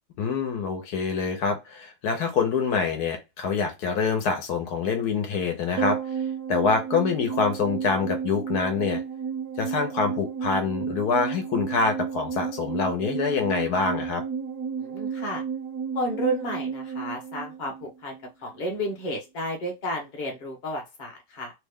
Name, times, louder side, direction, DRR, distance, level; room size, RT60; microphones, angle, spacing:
voice 1, 0.2-6.2 6.5-9.0 9.6-14.2, left 5 dB, 80° left, 5 dB, 1.3 m, -26 dB
sound 1, 5.8-18.3 18.5-18.6, right 7 dB, 75° right, 1.1 m, -32 dB
voice 2, 14.8-15.4 15.9-18.2 18.4-21.5, equal, 35° left, 0 dB, 0.9 m, -32 dB
3.2 x 2.2 x 3.5 m, 0.23 s
omnidirectional pair, 1.7 m